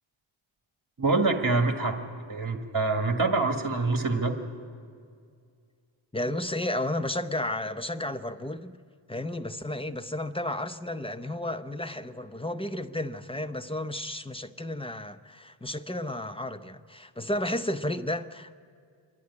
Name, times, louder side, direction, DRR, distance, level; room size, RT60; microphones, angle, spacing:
voice 1, 1.0-2.0 2.3-4.3, right 3 dB, 45° right, 1.6 m, -25 dB
voice 2, 6.1-8.8 9.1-18.5, left 1 dB, 10° left, 0.6 m, -32 dB
26.0 x 11.5 x 9.6 m
wide cardioid pair, 90°, 49 cm